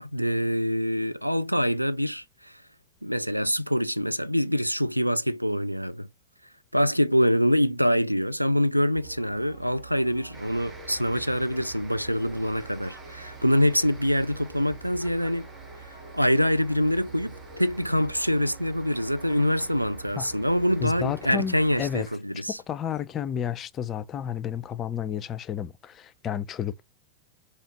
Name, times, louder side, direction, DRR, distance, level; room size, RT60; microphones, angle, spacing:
voice 1, 0.0-2.5 3.0-6.1 6.7-15.5 15.9-22.6, equal, 90° right, 0.3 m, -25 dB
sound 1, 8.9-22.0, right 3 dB, 50° right, 2.9 m, -45 dB
sound 2, 10.3-22.2, right 2 dB, 20° right, 1.8 m, -50 dB
voice 2, 20.8-22.1 22.5-26.8, left 9 dB, 30° left, 0.4 m, -31 dB
4.2 x 3.0 x 3.0 m
figure-of-eight pair, 90°, 0 cm